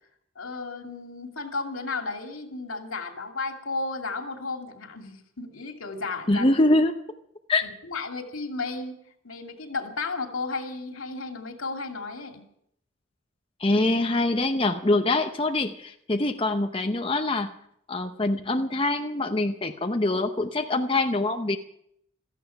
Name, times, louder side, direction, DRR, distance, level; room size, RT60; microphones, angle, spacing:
voice 1, 0.4-6.5 7.6-8.9 9.2-12.4, left 3 dB, 90° left, 4 dB, 2.7 m, -33 dB
voice 2, 6.3-7.0 7.5-7.6 13.6-17.5 17.9-21.6, left 2 dB, 25° left, 5 dB, 0.8 m, -24 dB
17.0 x 14.0 x 5.8 m, 0.71 s
head